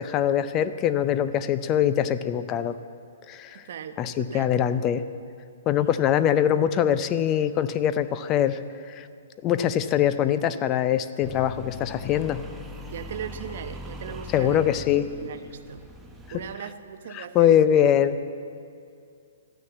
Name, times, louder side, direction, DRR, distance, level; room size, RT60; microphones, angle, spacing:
voice 1, 0.0-2.8 3.3-3.6 4.0-5.0 5.7-8.6 8.9-9.1 9.4-12.4 14.3-15.1 16.3-16.4 17.1-18.3, left 10 dB, 20° left, 13 dB, 0.5 m, -23 dB
voice 2, 3.5-4.5 12.9-14.8 15.2-15.8 16.3-17.8, right 8 dB, 55° right, 9 dB, 0.9 m, -38 dB
sound 1, 11.2-16.6, left 1 dB, 5° right, 0.8 m, -41 dB
14.0 x 9.7 x 8.2 m, 2.4 s
hypercardioid pair, 160°, 0 cm